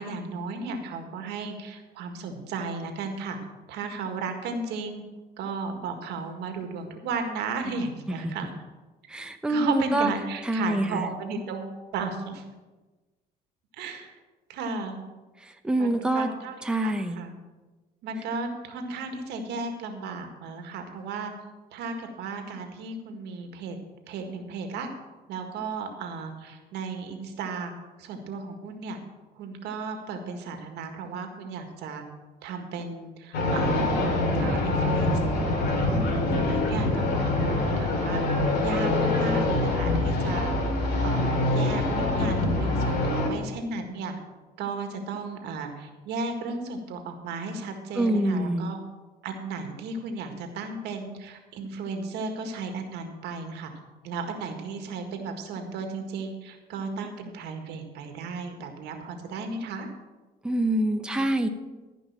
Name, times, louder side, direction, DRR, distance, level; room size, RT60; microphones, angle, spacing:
voice 1, 0.0-3.4 3.7-5.0 5.4-8.5 9.5-12.4 13.8-14.1 14.5-15.0 15.8-16.5 16.8-17.3 18.0-21.3 21.7-23.8 24.1-24.9 25.3-27.7 28.0-29.0 29.4-32.0 32.4-33.9 34.4-35.2 36.1-38.2 38.6-40.6 41.0-44.1 44.6-48.8 49.2-53.7 54.0-59.9, right 4 dB, 80° right, 5 dB, 1.8 m, -34 dB
voice 2, 9.1-10.1 10.4-11.1 15.4-16.3 16.6-17.2 47.9-48.7 60.4-61.5, right 1 dB, 5° right, 5 dB, 0.8 m, -26 dB
sound 1, 33.3-43.3, left 2 dB, 80° left, 2.8 m, -25 dB
14.0 x 5.4 x 7.3 m, 1.2 s
cardioid pair, 110°, 17 cm